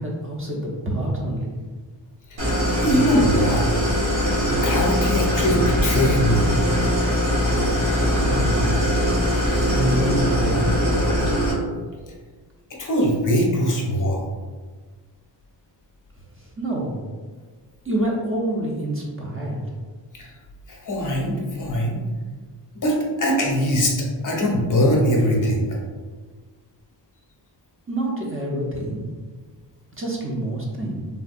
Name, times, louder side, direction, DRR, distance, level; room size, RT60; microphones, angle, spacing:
voice 1, 0.0-1.6 8.0-8.7 9.7-11.4 16.4-17.0 17.8-19.6 27.9-29.0 29.9-31.1, right 1 dB, 30° right, -3 dB, 0.5 m, -27 dB
Idling, 2.4-11.5, equal, 65° right, 1.3 m, -21 dB
voice 2, 2.8-3.6 4.5-6.5 12.8-14.2 20.1-20.3 20.7-22.0 22.8-23.9 24.2-25.7, equal, 45° left, -2 dB, 0.7 m, -21 dB
3.4 x 2.2 x 2.5 m, 1.5 s
wide cardioid pair, 100°, 45 cm